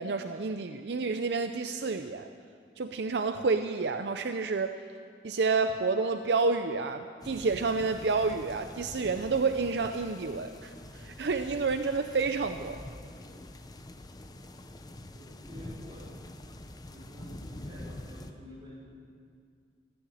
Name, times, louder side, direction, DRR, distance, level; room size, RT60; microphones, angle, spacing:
voice 1, 0.0-2.3 2.8-4.8 5.2-12.8, right 4 dB, 70° right, 8 dB, 0.6 m, -29 dB
sound 1, 7.2-18.3, left 1 dB, 20° left, 0.7 m, -45 dB
voice 2, 15.1-16.2 16.9-18.9, equal, 30° right, -6 dB, 4.9 m, -49 dB
15.5 x 9.2 x 9.8 m, 2.2 s
head